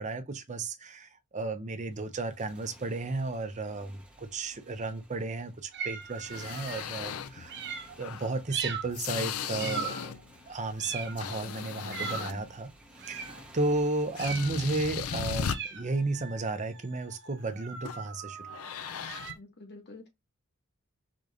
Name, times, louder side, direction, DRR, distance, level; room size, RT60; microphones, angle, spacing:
voice 1, 0.0-7.7 8.0-10.1 10.5-12.7 13.1-18.4, right 2 dB, 35° right, 0.7 m, -33 dB
Motorcycle, 1.9-17.1, equal, 5° right, 1.0 m, -56 dB
sound 1, 5.7-6.9 7.5-8.0 8.5-9.0 9.6-10.2 10.8-11.3 11.9-12.4 13.0-13.4 14.1-14.7 15.4-19.3, right 7 dB, 55° right, 1.0 m, -39 dB
sound 2, 6.2-7.5 8.0-10.3 10.7-12.6 13.8-13.9 14.2-15.6 17.8-18.1 18.4-19.3, left 7 dB, 75° left, 0.5 m, -37 dB
voice 2, 19.3-20.1, left 2 dB, 50° left, 1.8 m, -48 dB
4.8 x 3.9 x 2.5 m
head